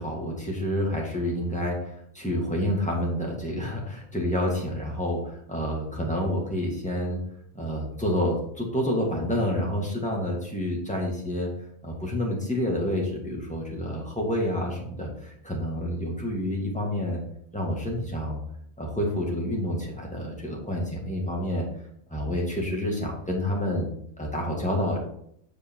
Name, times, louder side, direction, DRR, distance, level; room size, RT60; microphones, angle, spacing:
voice 1, 0.0-7.2 7.5-11.5 11.8-17.2 17.5-18.4 18.8-21.6 22.1-23.9 24.2-25.0, equal, 5° left, -2 dB, 1.9 m, -28 dB
7.6 x 4.8 x 4.6 m, 0.70 s
omnidirectional pair, 1.5 m